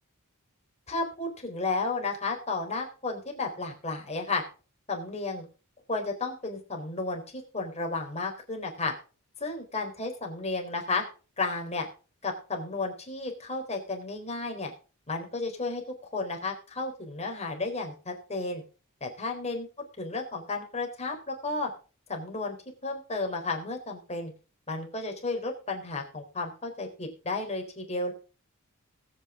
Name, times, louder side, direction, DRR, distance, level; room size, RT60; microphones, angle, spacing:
voice 1, 0.9-4.4 4.9-5.5 5.9-8.9 9.4-11.0 11.4-11.9 12.2-14.7 15.1-15.8 16.1-18.6 19.0-19.7 20.0-21.7 22.1-22.6 22.8-24.3 24.7-28.1, left 3 dB, 30° left, 2 dB, 3.8 m, -33 dB
20.0 x 8.8 x 3.8 m, 0.36 s
head